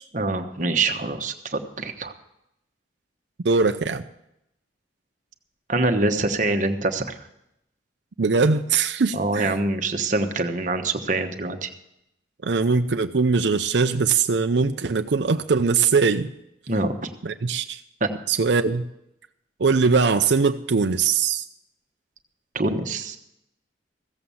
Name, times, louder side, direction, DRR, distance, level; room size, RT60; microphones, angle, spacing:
voice 1, 0.1-2.1 5.7-7.2 9.1-11.7 16.7-17.1 18.0-18.1 22.5-23.2, right 2 dB, 40° right, 6 dB, 1.1 m, -25 dB
voice 2, 3.4-4.0 8.2-9.5 12.4-16.3 17.2-17.8 18.3-18.9 19.6-21.4, right 4 dB, 65° right, 7 dB, 0.5 m, -21 dB
15.5 x 7.8 x 7.1 m, 0.82 s
head